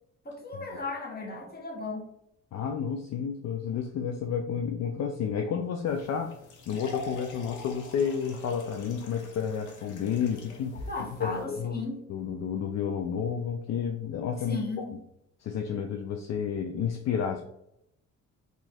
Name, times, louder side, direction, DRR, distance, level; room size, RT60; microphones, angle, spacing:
voice 1, 0.2-2.1 10.9-12.0 14.4-15.0, left 3 dB, 30° left, -1 dB, 1.2 m, -35 dB
voice 2, 2.5-6.4 6.7-10.7 11.2-11.8 12.1-14.9 15.4-17.4, left 7 dB, 60° left, 4 dB, 0.5 m, -31 dB
sound 1, 5.9-11.4, left 3 dB, 75° left, 0.9 m, -44 dB
2.8 x 2.5 x 4.1 m, 0.78 s
cardioid pair, 90°, 30 cm